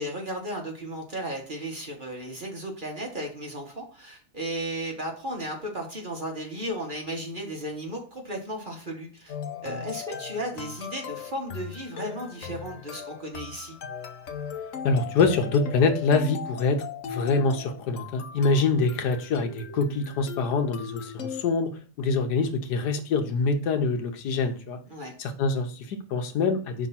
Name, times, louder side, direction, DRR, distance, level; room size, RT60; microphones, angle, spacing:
voice 1, 0.0-9.3 9.6-13.8 24.9-25.1, right 1 dB, 35° right, 0 dB, 1.2 m, -35 dB
sound 1, 9.3-21.4, left 6 dB, 55° left, 1.0 m, -38 dB
voice 2, 14.8-21.7 22.0-24.8 25.2-26.9, left 4 dB, 75° left, 6 dB, 1.5 m, -25 dB
5.3 x 3.6 x 5.6 m, 0.42 s
omnidirectional pair, 1.8 m